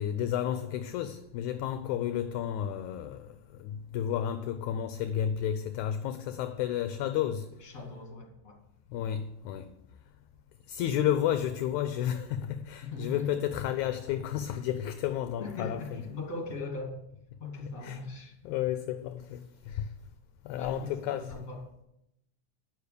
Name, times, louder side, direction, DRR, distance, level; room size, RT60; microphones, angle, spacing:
voice 1, 0.0-3.3 3.6-7.5 8.9-9.7 10.7-16.0 17.8-18.0 18.4-19.9 20.5-21.5, left 10 dB, 80° left, 1.8 m, -32 dB
voice 2, 1.7-2.0 7.6-8.6 12.8-13.6 15.4-17.0 17.4-18.3 20.6-21.6, left 3 dB, 25° left, 2.6 m, -39 dB
10.0 x 6.7 x 6.7 m
omnidirectional pair, 3.6 m